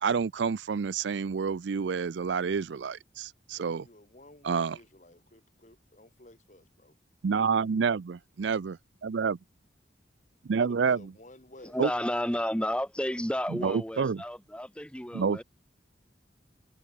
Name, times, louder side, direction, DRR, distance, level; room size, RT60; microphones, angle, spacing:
voice 1, 0.0-3.9 4.4-4.8 7.2-9.4 10.4-11.1 11.8-11.9 13.5-14.2 15.1-15.4, right 5 dB, 75° right, 0.4 m, -28 dB
voice 2, 3.5-7.0 10.6-11.8, left 1 dB, 40° left, 2.3 m, -54 dB
voice 3, 11.6-15.4, equal, 5° left, 2.2 m, -32 dB
head